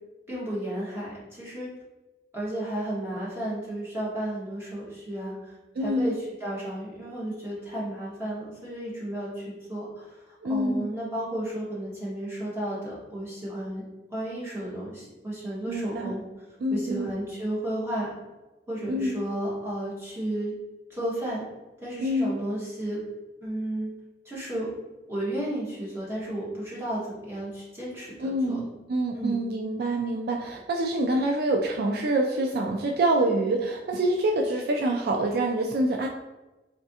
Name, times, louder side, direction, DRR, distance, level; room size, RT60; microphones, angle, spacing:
voice 1, 0.3-1.7 2.3-13.8 14.1-16.2 16.7-18.1 18.7-20.5 20.9-21.4 21.8-23.0 23.4-23.9 24.2-24.7 25.1-28.6 29.1-29.4, right 1 dB, 15° right, -7 dB, 1.4 m, -33 dB
voice 2, 5.8-6.1 10.4-10.9 15.7-16.2 16.6-17.1 18.9-19.2 22.0-22.3 28.2-36.1, right 1 dB, 60° right, 1 dB, 0.3 m, -26 dB
3.6 x 3.2 x 2.7 m, 1.1 s
head